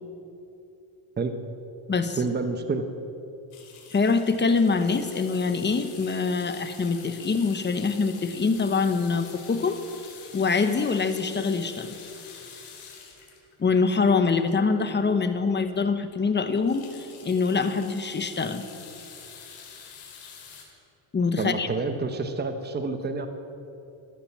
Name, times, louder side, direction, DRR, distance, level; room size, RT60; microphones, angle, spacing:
voice 1, 2.2-2.8 21.4-23.3, right 3 dB, 20° right, 7 dB, 1.0 m, -28 dB
sound 1, 3.5-14.8 15.3-15.4 15.6-15.8 16.1-20.6, left 6 dB, 75° left, 4.3 m, -46 dB
voice 2, 3.9-9.8 10.3-12.0 13.6-16.9 17.2-18.6 21.1-21.7, left 4 dB, 20° left, 9 dB, 0.9 m, -24 dB
15.0 x 13.0 x 7.4 m, 2.9 s
cardioid pair, 140°, 49 cm